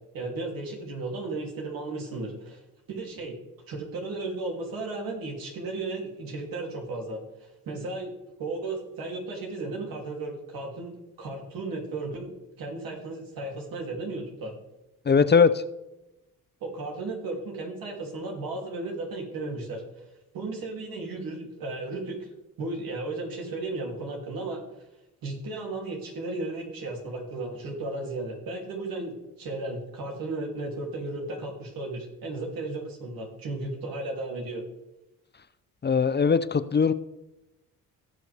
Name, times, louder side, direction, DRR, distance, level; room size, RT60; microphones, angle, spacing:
voice 1, 0.1-2.6 2.9-3.3 3.7-8.1 8.4-14.5 16.6-20.0 20.3-22.3 22.6-24.6 25.2-34.6, right 2 dB, 80° right, 0 dB, 3.0 m, -35 dB
voice 2, 15.1-15.6 35.8-36.9, left 5 dB, 30° left, 13 dB, 0.6 m, -20 dB
17.5 x 6.3 x 3.5 m, 0.95 s
cardioid pair, 65°, 34 cm